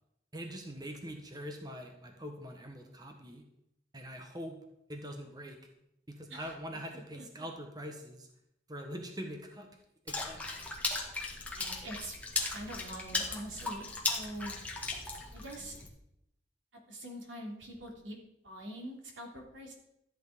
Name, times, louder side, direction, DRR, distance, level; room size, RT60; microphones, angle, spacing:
voice 1, 0.3-3.4 3.9-4.6 4.9-5.6 6.1-8.3 8.7-9.7 10.0-10.4, equal, 20° right, 4 dB, 1.4 m, -43 dB
voice 2, 6.9-7.5 11.5-12.2 12.5-14.5 15.3-15.8 16.9-18.2 18.4-19.7, right 1 dB, 85° right, 1 dB, 3.4 m, -44 dB
Water / Splash splatter, 10.1-15.9, left 3 dB, 10° left, 1.8 m, -37 dB
13.5 x 9.2 x 5.2 m, 0.79 s
head